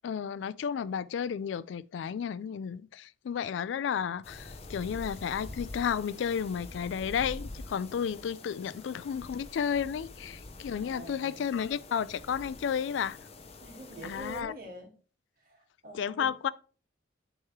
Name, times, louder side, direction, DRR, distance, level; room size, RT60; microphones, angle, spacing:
voice 1, 0.0-13.2 14.0-14.5 15.9-16.5, left 7 dB, 75° left, 0.3 m, -32 dB
sound 1, 4.2-14.4, left 2 dB, 35° left, 0.6 m, -46 dB
voice 2, 10.8-11.5 13.6-14.9 15.4-16.3, right 1 dB, 50° right, 1.8 m, -46 dB
9.4 x 3.6 x 3.1 m
head